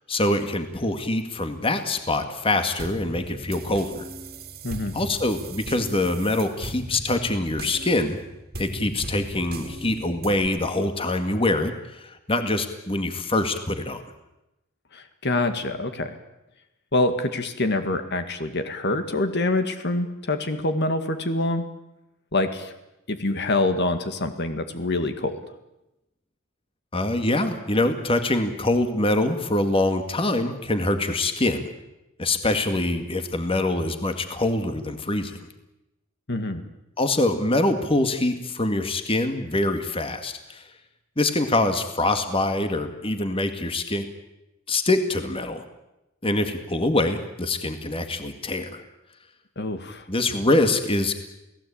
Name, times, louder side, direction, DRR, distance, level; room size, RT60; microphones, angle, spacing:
voice 1, 0.1-4.1 4.9-8.2 8.6-14.0 26.9-31.7 32.2-35.4 37.0-40.6 41.2-44.1 44.7-45.6 46.2-48.8 50.1-51.1, left 2 dB, 25° left, 7 dB, 2.0 m, -24 dB
sound 1, 2.8-10.5, right 1 dB, 50° right, 2.4 m, -38 dB
voice 2, 4.6-4.9 14.9-16.1 16.9-21.6 22.3-22.7 23.1-25.4 36.3-36.6 49.6-50.1, left 2 dB, 55° left, 8 dB, 2.1 m, -25 dB
29.5 x 18.0 x 8.8 m, 0.93 s
head